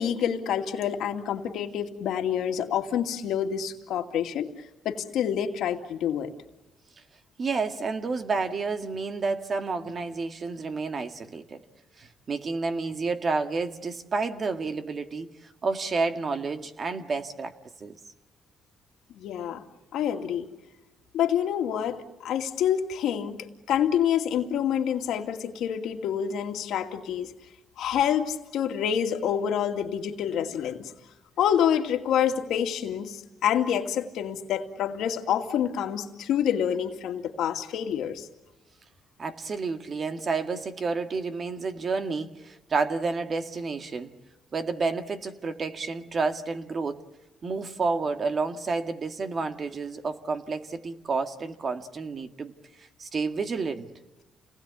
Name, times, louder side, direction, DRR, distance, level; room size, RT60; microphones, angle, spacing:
voice 1, 0.0-4.5 4.8-6.3 19.2-19.6 19.9-20.5 21.1-27.3 27.8-30.9 31.4-38.3, left 9 dB, 80° left, 4 dB, 2.3 m, -27 dB
voice 2, 7.4-11.6 12.0-17.5 17.8-18.0 39.2-44.1 44.5-47.1 47.4-53.9, right 4 dB, 45° right, 7 dB, 2.0 m, -30 dB
29.0 x 20.0 x 8.3 m, 1.1 s
cardioid pair, 90°, 0 cm